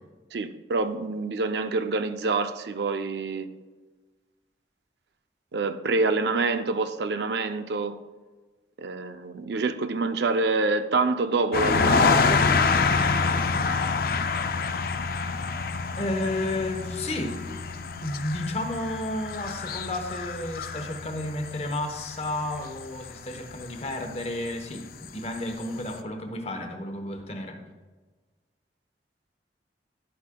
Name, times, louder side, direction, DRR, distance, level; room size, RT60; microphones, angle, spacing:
voice 1, 0.3-3.5 5.5-8.0 8.8-12.4, right 3 dB, 75° right, 0.5 m, -27 dB
sound 1, 11.5-23.9 24.5-24.6, left 4 dB, 55° left, 0.4 m, -26 dB
voice 2, 16.0-17.3 18.0-24.9 25.1-27.6, left 1 dB, 35° left, 0.9 m, -32 dB
11.5 x 8.3 x 2.2 m
head